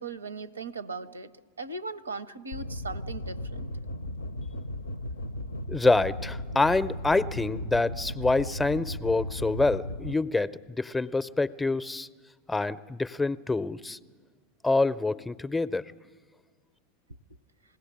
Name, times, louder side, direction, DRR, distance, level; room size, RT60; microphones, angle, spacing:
voice 1, 0.0-1.3 1.6-3.7, right 3 dB, 80° right, 0.7 m, -38 dB
sound 1, 2.5-10.1, left 1 dB, 80° left, 0.5 m, -36 dB
voice 2, 5.7-12.1 12.5-14.0 14.6-15.9, left 3 dB, 10° left, 0.5 m, -26 dB
21.0 x 16.5 x 9.7 m
figure-of-eight pair, 85°, 0 cm